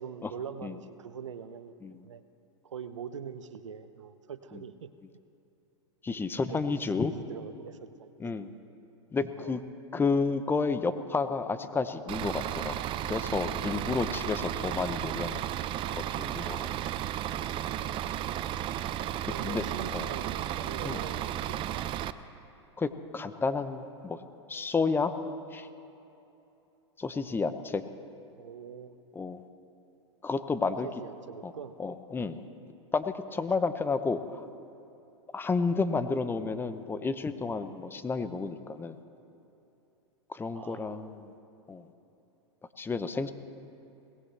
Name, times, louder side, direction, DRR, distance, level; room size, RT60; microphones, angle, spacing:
voice 1, 0.0-1.8 2.0-2.2 2.6-4.9 6.4-8.3 9.4-9.6 19.3-21.9 28.4-29.0 30.7-31.8 40.5-41.2, right 7 dB, 85° right, 12 dB, 0.8 m, -43 dB
voice 2, 6.0-7.1 8.2-8.5 9.1-9.6 9.9-12.8 13.1-15.4 15.9-16.7 19.4-19.6 19.9-20.1 20.8-21.0 22.8-24.2 24.5-25.1 25.5-25.7 27.0-27.8 29.1-29.4 30.2-30.9 31.4-31.5 31.8-32.4 32.9-34.5 35.3-39.0 40.3-41.3 41.7-41.8 42.8-43.3, left 4 dB, 15° left, 11 dB, 0.8 m, -31 dB
Bus / Idling, 12.1-22.1, right 11 dB, 35° right, 0.6 m, -34 dB
22.5 x 18.5 x 3.4 m, 2.9 s
hypercardioid pair, 105°, 15 cm